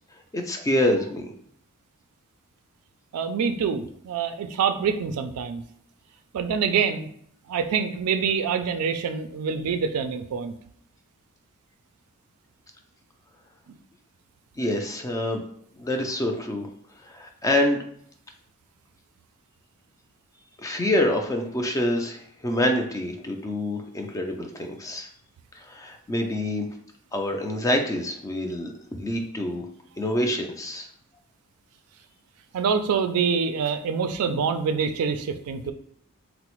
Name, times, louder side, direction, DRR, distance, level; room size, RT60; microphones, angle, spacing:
voice 1, 0.3-1.3 14.6-15.4 15.8-16.7 17.0-17.8 20.6-25.1 25.6-26.7 27.1-29.7 30.0-30.9, left 1 dB, 15° left, 3 dB, 0.3 m, -26 dB
voice 2, 3.1-5.6 6.3-7.1 7.5-10.5 32.5-35.7, right 6 dB, 85° right, 9 dB, 0.3 m, -25 dB
3.9 x 2.0 x 2.9 m, 0.66 s
head